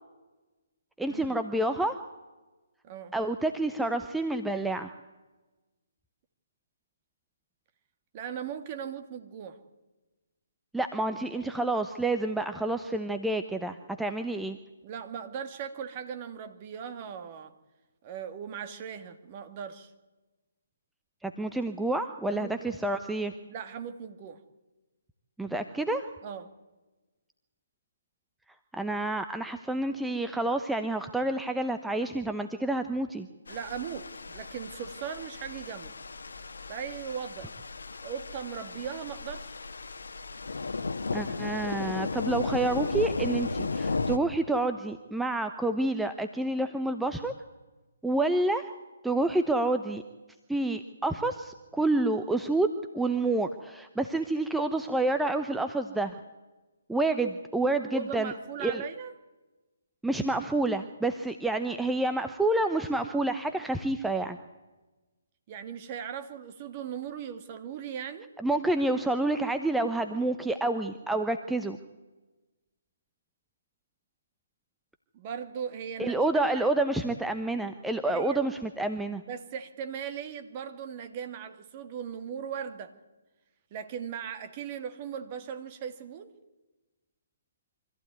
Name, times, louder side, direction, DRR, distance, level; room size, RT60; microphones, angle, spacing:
voice 1, 1.0-2.0 3.1-4.9 10.7-14.6 21.2-23.3 25.4-26.0 28.7-33.3 41.1-47.3 48.0-48.7 49.0-50.0 50.5-52.7 52.9-56.2 56.9-58.3 58.6-58.8 60.0-64.4 68.4-71.8 76.0-79.2, right 2 dB, 5° right, 7 dB, 0.8 m, -28 dB
voice 2, 8.1-9.6 14.8-17.5 18.0-19.9 22.3-22.7 23.5-24.4 26.2-26.5 33.5-35.9 36.7-37.5 38.0-39.6 57.2-57.3 57.9-59.1 65.5-68.3 75.1-76.7 78.1-78.4 79.3-82.9 83.7-86.3, right 8 dB, 35° right, 9 dB, 2.0 m, -38 dB
sound 1, 33.5-44.2, left 3 dB, 70° left, 1.3 m, -35 dB
24.5 x 14.5 x 9.4 m, 1.2 s
figure-of-eight pair, 140°, 0 cm